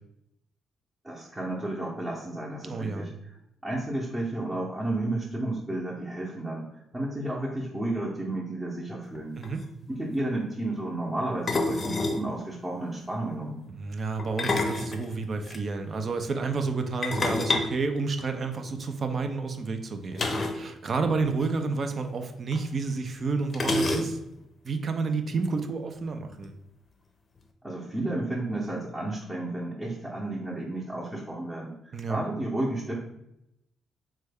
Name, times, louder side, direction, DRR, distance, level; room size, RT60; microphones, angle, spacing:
voice 1, 1.0-3.1 3.6-6.7 6.9-9.3 9.9-13.6 27.6-32.9, right 1 dB, 15° right, -6 dB, 0.8 m, -32 dB
voice 2, 2.7-3.1 9.4-9.6 13.7-20.3 20.5-24.2 24.6-26.5 31.9-32.2, right 4 dB, 50° right, 7 dB, 0.4 m, -30 dB
sound 1, 9.1-9.2 9.4-9.7 11.5-12.3 14.2-15.6 17.0-18.7 20.2-20.7 20.9-21.0 21.3-21.5 22.5-22.6 23.5-24.4, left 2 dB, 45° left, 0.5 m, -28 dB
3.1 x 2.2 x 3.5 m, 0.82 s
supercardioid pair, 60°, 0 cm